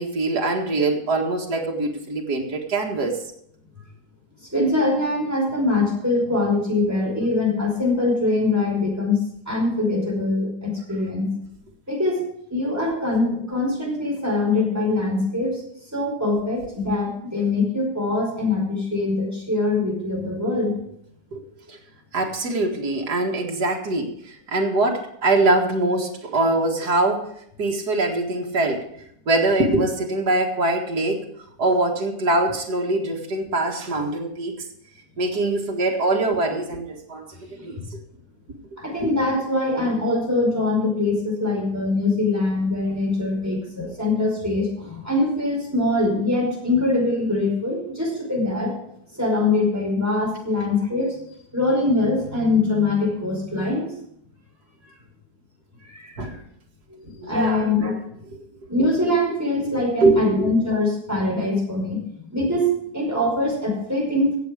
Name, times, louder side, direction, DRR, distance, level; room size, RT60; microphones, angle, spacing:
voice 1, 0.0-3.2 21.3-21.4 22.1-27.3 27.6-28.9 29.3-31.3 31.6-34.6 35.2-37.8 39.0-39.1 56.2-56.3 57.2-57.9 60.0-60.5, right 2 dB, 80° right, -1 dB, 2.4 m, -23 dB
voice 2, 4.5-9.2 9.5-11.3 11.9-12.2 12.5-15.6 15.9-20.8 37.8-37.9 38.8-48.7 49.1-51.2 51.5-53.9 55.8-56.4 56.9-58.0 58.7-64.4, left 2 dB, 10° right, -2 dB, 5.0 m, -23 dB
16.5 x 7.7 x 5.0 m, 0.71 s
omnidirectional pair, 1.7 m